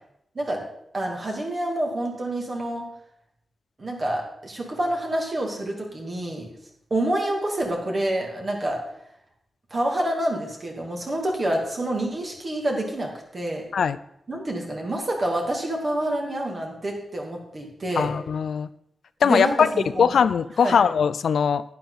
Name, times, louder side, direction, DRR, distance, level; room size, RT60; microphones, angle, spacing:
voice 1, 0.9-2.8 3.8-6.5 6.9-8.8 9.7-13.6 14.3-18.1 19.2-20.1 20.6-20.8, right 1 dB, 35° right, 1 dB, 2.6 m, -27 dB
voice 2, 18.0-18.7 19.2-19.7 20.0-21.6, left 7 dB, 80° left, 15 dB, 0.4 m, -20 dB
11.0 x 10.0 x 4.1 m, 0.76 s
wide cardioid pair, 135°, 0 cm